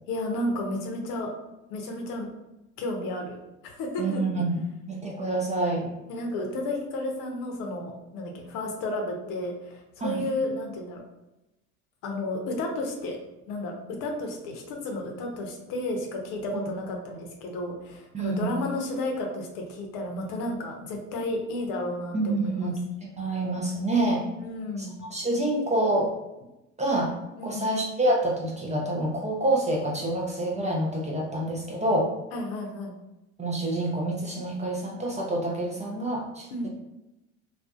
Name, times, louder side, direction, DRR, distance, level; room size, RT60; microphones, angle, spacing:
voice 1, 0.1-1.3 1.7-2.3 2.8-3.4 3.6-4.2 6.1-11.0 12.0-13.2 13.5-22.7 24.4-24.9 27.4-27.7 32.3-32.9 36.5-36.7, left 1 dB, 55° left, 2 dB, 0.7 m, -32 dB
voice 2, 4.0-4.6 4.8-5.9 10.0-10.3 18.1-18.5 22.1-22.8 23.2-24.2 24.8-26.1 26.8-27.1 27.4-32.1 33.4-36.7, right 1 dB, 20° right, -2 dB, 0.5 m, -27 dB
2.5 x 2.3 x 2.3 m, 0.95 s
hypercardioid pair, 70°, 41 cm